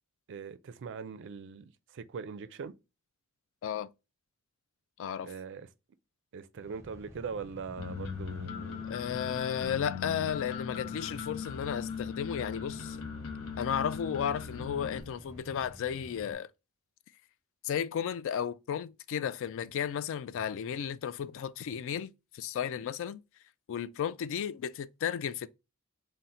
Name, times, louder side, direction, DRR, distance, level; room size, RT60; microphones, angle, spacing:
voice 1, 0.3-2.8 5.2-5.7 6.3-8.9, right 5 dB, 60° right, 0.4 m, -41 dB
voice 2, 5.0-5.3 8.8-13.0 13.6-16.5 17.6-23.2 23.7-25.5, left 8 dB, 60° left, 0.3 m, -34 dB
sound 1, 6.5-16.3, right 1 dB, 10° right, 0.5 m, -51 dB
sound 2, 7.8-15.0, left 6 dB, 90° left, 0.7 m, -39 dB
3.9 x 2.1 x 4.1 m
head